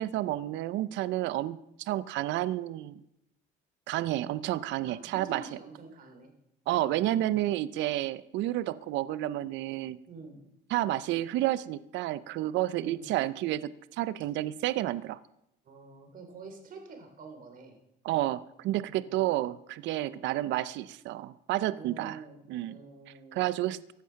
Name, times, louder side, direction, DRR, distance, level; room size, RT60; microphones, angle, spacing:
voice 1, 0.0-3.0 3.9-5.4 6.7-10.0 10.7-15.2 18.0-22.2 22.5-22.7 23.3-23.8, right 14 dB, 65° right, 17 dB, 0.6 m, -30 dB
voice 2, 4.8-6.3 10.1-10.4 12.7-13.0 15.6-17.8 18.9-19.4 20.0-20.3 21.7-22.4 22.6-23.4, right 4 dB, 40° right, 5 dB, 3.3 m, -47 dB
15.0 x 11.0 x 5.7 m, 0.83 s
cardioid pair, 140°, 21 cm